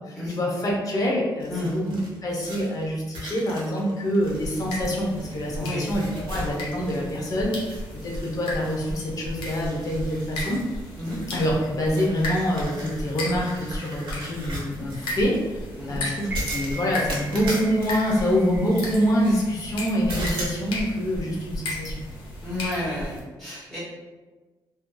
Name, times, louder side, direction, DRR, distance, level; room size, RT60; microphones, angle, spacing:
voice 1, 0.1-2.0 2.2-10.6 11.3-22.0, equal, 45° left, -3 dB, 0.7 m, -26 dB
sound 1, 1.4-5.5 5.8-7.2 7.5-9.0 9.4-15.4 16.3-19.4 20.1-20.6, right 1 dB, 80° right, 0.8 m, -38 dB
sound 2, 4.2-23.2, left 1 dB, 80° left, 0.7 m, -35 dB
sound 3, 16.2-20.4 20.8-20.9, right 2 dB, 25° right, 0.4 m, -40 dB
voice 2, 22.4-23.1 23.4-23.8, left 1 dB, 5° left, -10 dB, 0.9 m, -31 dB
2.6 x 2.5 x 2.2 m, 1.2 s
cardioid pair, 100°, 9 cm